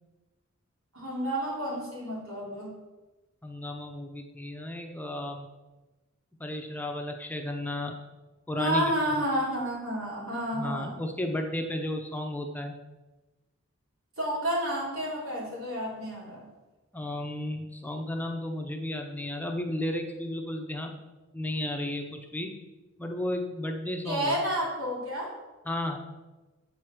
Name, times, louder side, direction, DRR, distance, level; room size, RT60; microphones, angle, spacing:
voice 1, 0.9-2.7 8.6-11.0 14.2-16.5 24.0-25.3, equal, 85° right, -4 dB, 3.1 m, -30 dB
voice 2, 3.4-5.5 6.4-8.0 8.5-9.2 10.5-12.8 16.9-21.0 21.3-22.6 23.0-24.4 25.7-26.0, left 1 dB, 10° left, 3 dB, 0.6 m, -33 dB
7.9 x 4.9 x 5.9 m, 1.1 s
head